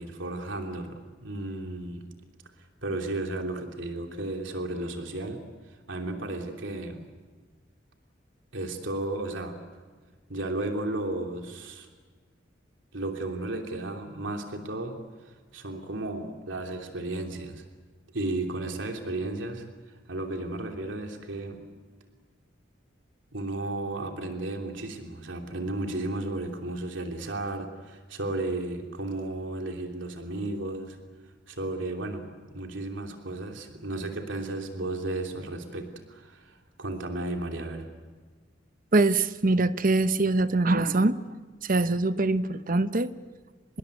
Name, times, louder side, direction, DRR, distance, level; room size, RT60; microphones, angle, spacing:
voice 1, 0.0-2.0 2.8-5.4 5.7-7.1 8.5-9.6 10.3-11.9 12.9-15.0 15.2-17.6 18.1-21.6 23.3-31.0 31.5-37.8, right 2 dB, 75° right, 3 dB, 3.0 m, -34 dB
voice 2, 38.9-41.2 41.6-43.1, right 2 dB, 45° right, 12 dB, 0.9 m, -23 dB
25.5 x 21.5 x 8.4 m, 1.5 s
head